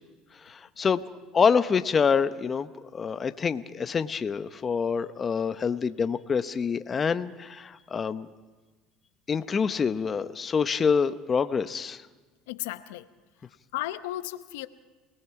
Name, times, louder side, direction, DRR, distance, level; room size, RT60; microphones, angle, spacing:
voice 1, 0.4-1.0 1.3-8.3 9.3-12.0, left 6 dB, 30° left, 11 dB, 0.8 m, -26 dB
voice 2, 12.5-13.1 13.7-14.7, left 15 dB, 90° left, 12 dB, 0.8 m, -34 dB
28.5 x 19.0 x 4.8 m, 1.3 s
supercardioid pair, 110°, 0 cm